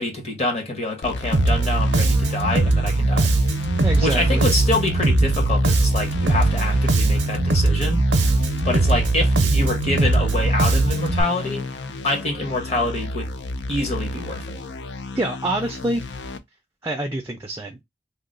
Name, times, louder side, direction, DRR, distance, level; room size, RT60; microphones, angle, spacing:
voice 1, 0.0-3.3 4.0-8.0 8.6-11.6 12.0-13.3 13.7-14.6, left 2 dB, 35° left, 1.0 m, -26 dB
sound 1, 1.0-16.4, left 2 dB, 80° left, 0.4 m, -32 dB
Bass guitar, 1.3-11.2, right 2 dB, 85° right, 0.6 m, -20 dB
voice 2, 3.8-4.4 15.1-16.0 16.8-17.8, right 1 dB, 15° right, 0.3 m, -26 dB
2.9 x 2.0 x 3.7 m
head